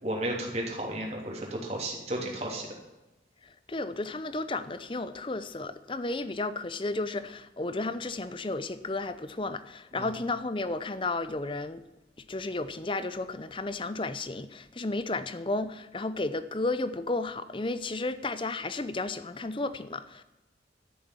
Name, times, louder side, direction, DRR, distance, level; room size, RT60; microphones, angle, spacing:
voice 1, 0.0-2.7 9.9-10.2, right 1 dB, 35° right, 3.1 m, -33 dB
voice 2, 3.7-11.8 12.3-20.2, left 2 dB, 30° left, 0.6 m, -33 dB
13.0 x 7.1 x 7.4 m
head